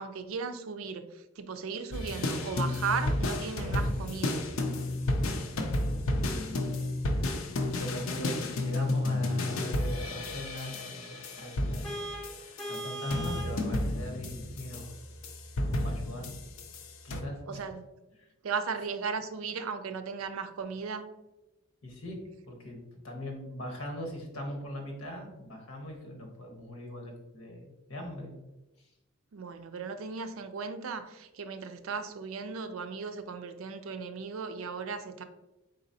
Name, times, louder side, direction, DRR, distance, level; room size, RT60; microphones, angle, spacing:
voice 1, 0.0-4.4 17.5-17.8 18.4-21.1 29.3-35.2, right 5 dB, 80° right, 9 dB, 0.4 m, -36 dB
sound 1, 1.9-17.2, left 1 dB, 75° left, 0.5 m, -32 dB
voice 2, 6.2-6.7 7.7-11.9 12.4-14.9 15.8-16.3 17.0-17.6 18.2-18.3 21.8-22.2 22.5-28.3 28.8-28.9, left 1 dB, 90° left, 2 dB, 1.1 m, -41 dB
Vehicle horn car horn honking, 11.8-13.6, right 1 dB, ahead, 0.5 m, -38 dB
4.0 x 3.9 x 2.7 m, 0.99 s
head